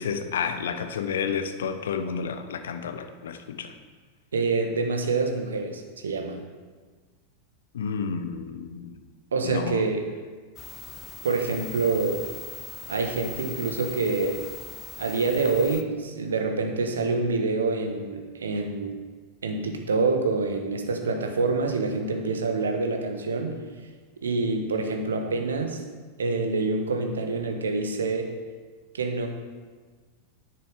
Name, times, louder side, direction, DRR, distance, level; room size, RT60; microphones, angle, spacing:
voice 1, 0.0-3.7 7.7-9.0 9.4-9.8, left 6 dB, 60° left, 8 dB, 0.9 m, -30 dB
voice 2, 4.3-6.4 9.3-10.0 11.2-12.2 12.9-14.4 15.0-18.9 19.4-23.6 24.2-25.8 26.2-28.3 28.9-29.3, right 3 dB, 70° right, 4 dB, 1.3 m, -26 dB
sound 1, 10.6-15.8, left 4 dB, 25° left, 0.7 m, -40 dB
10.0 x 7.7 x 4.9 m, 1.5 s
figure-of-eight pair, 90°, 0 cm